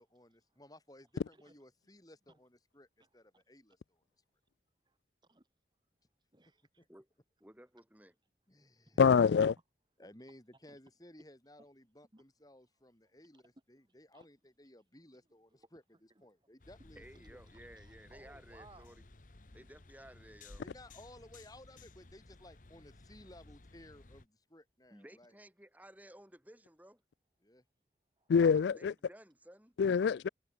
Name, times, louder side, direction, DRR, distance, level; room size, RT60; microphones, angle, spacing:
voice 1, 0.0-2.9 3.1-4.0 8.5-9.0 10.0-17.4 20.6-25.3 27.4-27.6, left 1 dB, 20° left, 4.6 m, -58 dB
voice 2, 1.3-1.6 2.3-2.4 3.0-3.4 4.9-5.5 6.3-6.9 8.6-9.0 10.7-10.8 11.6-11.7 12.1-12.2 13.3-13.5 14.1-14.3 15.1-15.2 15.5-15.7 16.1-16.5 17.7-19.0 28.2-28.3, right 2 dB, 25° right, 2.1 m, -63 dB
voice 3, 7.4-8.1 16.9-19.0 19.5-20.6 24.9-27.0 28.7-29.8, right 1 dB, 10° right, 3.9 m, -56 dB
voice 4, 9.0-9.5 28.3-28.9 29.8-30.3, left 6 dB, 75° left, 0.3 m, -25 dB
sound 1, 16.6-24.3, left 2 dB, 45° left, 1.1 m, -57 dB
head